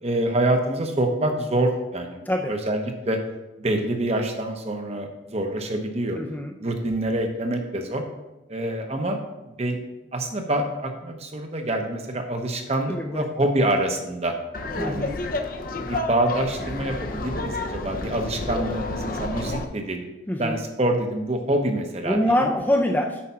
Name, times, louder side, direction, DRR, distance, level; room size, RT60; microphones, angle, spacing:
voice 1, 0.0-3.2 3.6-6.2 6.6-8.0 8.5-9.8 10.1-14.3 14.8-15.1 15.8-20.0 20.4-22.5, right 1 dB, 35° right, 5 dB, 0.9 m, -26 dB
voice 2, 6.1-6.5 12.9-13.3 14.8-15.2 20.3-20.6 22.0-23.2, left 1 dB, 10° left, 2 dB, 0.5 m, -24 dB
Laughter, 14.5-19.6, left 2 dB, 50° left, 0.7 m, -30 dB
8.6 x 4.9 x 5.6 m, 1.0 s
head